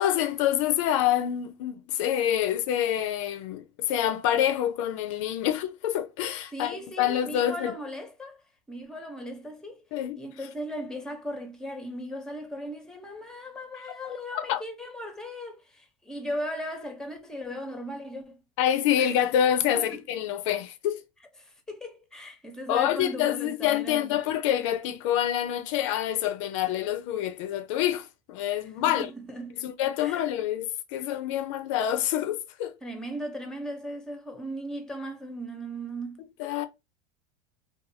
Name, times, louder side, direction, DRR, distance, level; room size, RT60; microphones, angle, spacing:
voice 1, 0.0-7.7 9.9-10.2 14.0-14.6 18.6-21.0 22.7-29.1 29.6-32.8 36.4-36.7, left 11 dB, 70° left, 0.4 m, -27 dB
voice 2, 6.5-8.4 8.7-9.8 10.2-18.4 19.0-19.1 19.7-20.0 21.4-24.2 28.9-29.6 30.0-30.2 32.8-36.2, equal, 5° left, 0.7 m, -37 dB
2.6 x 2.2 x 2.6 m
supercardioid pair, 115°, 17 cm